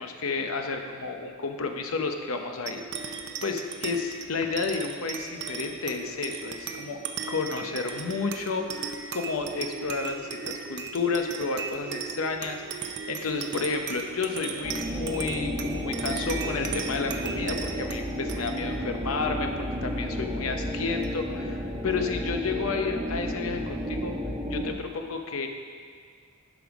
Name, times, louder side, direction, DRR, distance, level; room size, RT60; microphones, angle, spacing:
voice 1, 0.0-7.0 7.3-19.5 19.8-24.2 24.5-25.5, left 4 dB, 75° left, 4 dB, 0.8 m, -31 dB
sound 1, 2.7-21.5, right 5 dB, 55° right, 0.6 m, -37 dB
sound 2, 14.6-24.7, equal, 20° right, 1.0 m, -32 dB
11.0 x 5.3 x 5.0 m, 2.1 s
head